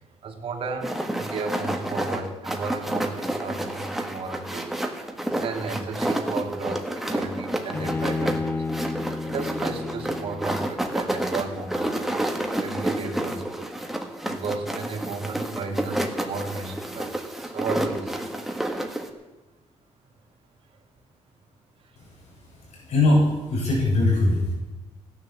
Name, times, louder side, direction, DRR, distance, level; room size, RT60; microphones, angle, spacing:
voice 1, 0.2-4.8 5.4-8.7 9.2-12.2 12.6-13.7 14.3-18.5, right 4 dB, 50° right, 1 dB, 3.0 m, -34 dB
sound 1, 0.8-19.1, right 1 dB, ahead, 1.5 m, -29 dB
Bowed string instrument, 7.7-11.0, left 3 dB, 15° left, 0.7 m, -31 dB
voice 2, 22.7-24.5, left 2 dB, 65° left, -3 dB, 7.0 m, -21 dB
16.5 x 10.5 x 7.3 m, 1.1 s
cardioid pair, 150°, 12 cm